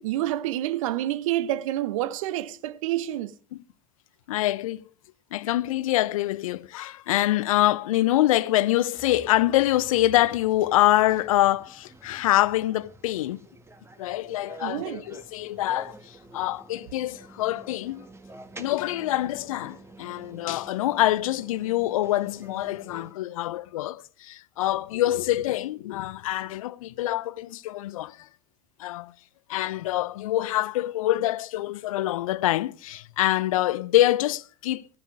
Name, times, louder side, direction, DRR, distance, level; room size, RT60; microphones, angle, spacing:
voice 1, 0.0-3.3 14.6-15.0, right 14 dB, 65° right, 0.8 m, -28 dB
voice 2, 4.3-4.8 5.3-13.4 14.0-18.1 18.6-28.2 28.8-29.1 29.5-35.0, left 15 dB, 70° left, 0.6 m, -25 dB
sound 1, 9.0-23.1, right 2 dB, 15° right, 1.6 m, -48 dB
15.0 x 9.3 x 4.8 m
hypercardioid pair, 75°, 18 cm